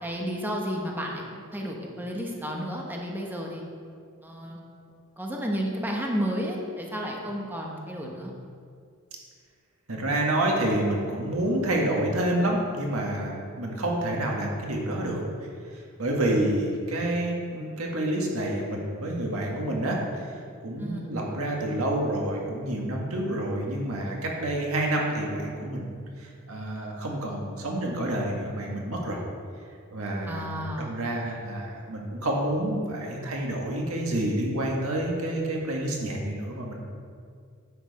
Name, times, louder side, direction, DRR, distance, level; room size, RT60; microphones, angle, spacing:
voice 1, 0.0-3.6 4.2-4.6 5.2-8.3 20.8-21.0 30.3-30.9, equal, 10° right, -1 dB, 1.0 m, -32 dB
voice 2, 9.9-15.2 15.7-20.2 20.6-25.9 26.2-29.2 29.9-36.8, right 1 dB, 85° right, -1 dB, 1.7 m, -28 dB
9.9 x 7.2 x 4.2 m, 2.2 s
head